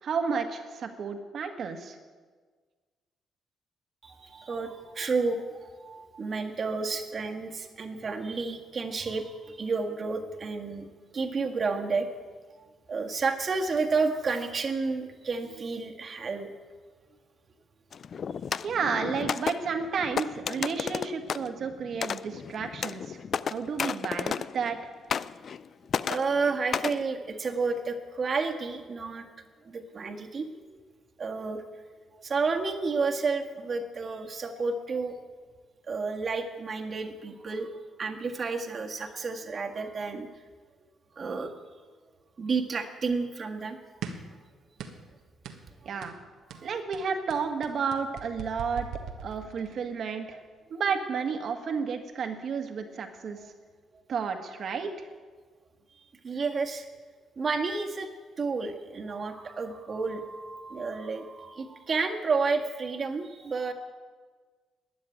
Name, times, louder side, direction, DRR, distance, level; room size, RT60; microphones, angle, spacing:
voice 1, 0.0-2.0 18.6-23.2 23.5-24.8 45.8-46.2 46.6-48.9 49.2-50.4 50.7-53.4 54.1-55.1, right 5 dB, 60° right, 5 dB, 1.7 m, -31 dB
voice 2, 4.0-10.9 11.1-12.3 12.9-16.5 26.1-29.3 29.6-30.8 31.2-31.6 31.9-35.2 35.9-37.7 38.0-40.3 41.1-41.5 42.4-43.9 46.5-46.7 53.4-53.5 56.0-56.9 57.4-58.1 58.4-63.7, right 4 dB, 45° right, 3 dB, 1.7 m, -31 dB
sound 1, 17.9-24.8 25.1-25.6 25.9-27.0, left 7 dB, 55° left, 0.4 m, -33 dB
sound 2, 44.0-44.4 44.8-45.1 45.4-45.7 46.0-46.2 46.5-49.8, right 7 dB, 85° right, 1.4 m, -40 dB
12.5 x 9.4 x 9.2 m, 1.5 s
cardioid pair, 90°, 0 cm